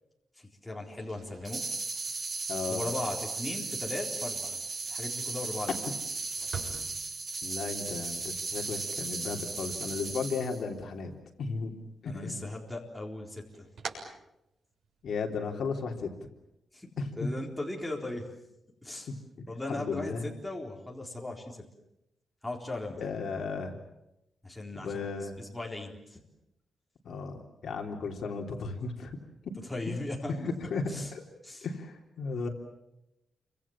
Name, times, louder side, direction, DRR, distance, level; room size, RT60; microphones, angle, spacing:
voice 1, 0.4-1.6 2.7-4.6 4.9-5.8 12.1-13.7 16.7-16.9 17.2-18.3 18.8-19.1 19.5-21.6 22.4-23.1 24.4-26.2 29.7-30.3 30.9-31.1 31.4-31.7, left 2 dB, 5° left, -1 dB, 4.0 m, -38 dB
sound 1, 0.9-10.9 11.2-12.0 12.4-15.0, right 5 dB, 65° right, 7.1 m, -48 dB
sound 2, 1.4-10.6, right 3 dB, 40° right, 4.1 m, -36 dB
voice 2, 2.5-2.9 7.4-11.1 11.4-11.7 12.0-12.4 15.0-16.1 17.0-17.3 19.1-20.3 23.0-23.8 24.7-25.4 27.0-29.2 29.4-29.5 30.3-30.8 31.1-31.2 31.6-32.5, left 4 dB, 55° left, 2 dB, 3.3 m, -35 dB
29.5 x 25.0 x 7.4 m, 0.87 s
wide cardioid pair, 180°, 0 cm